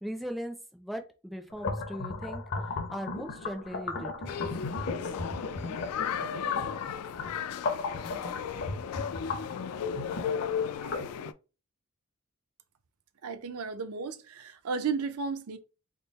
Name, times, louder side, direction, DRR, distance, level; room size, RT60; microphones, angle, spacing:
voice 1, 0.0-2.4 2.9-4.3, equal, ahead, 0.5 m, -38 dB
sound 1, 1.5-11.1, left 3 dB, 55° left, 0.7 m, -36 dB
sound 2, 4.3-11.3, left 7 dB, 75° left, 0.3 m, -35 dB
voice 2, 13.2-15.6, right 5 dB, 70° right, 0.5 m, -33 dB
3.7 x 2.0 x 3.9 m
head